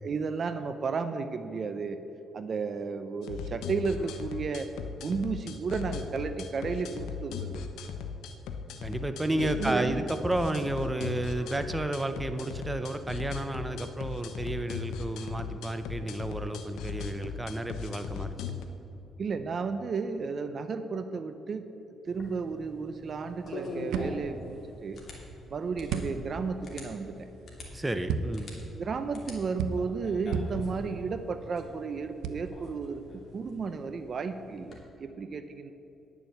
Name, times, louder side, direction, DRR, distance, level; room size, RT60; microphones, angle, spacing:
voice 1, 0.0-2.0 2.3-4.7 5.0-7.6 9.3-10.0 19.2-21.7 22.1-25.0 25.5-27.3 28.8-35.7, right 5 dB, 50° right, 10 dB, 0.6 m, -33 dB
sound 1, 3.2-18.6, left 6 dB, 85° left, 0.9 m, -38 dB
voice 2, 8.8-18.6 27.7-28.5, right 1 dB, 15° right, 9 dB, 0.7 m, -32 dB
sound 2, 22.1-34.8, left 1 dB, 45° left, 2.7 m, -45 dB
sound 3, 23.1-33.9, right 5 dB, 90° right, 0.6 m, -38 dB
10.0 x 7.1 x 7.8 m, 3.0 s
cardioid pair, 90°, 0 cm